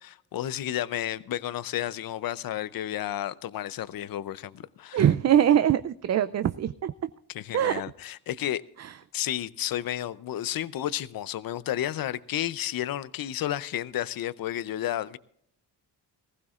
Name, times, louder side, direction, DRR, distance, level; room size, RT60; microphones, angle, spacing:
voice 1, 0.0-5.1 7.3-8.6 9.1-15.2, left 12 dB, 60° left, 0.6 m, -32 dB
voice 2, 4.9-6.9 7.5-7.8 8.8-8.9, right 10 dB, 40° right, 0.4 m, -22 dB
19.5 x 15.5 x 2.4 m
cardioid pair, 95°, 40 cm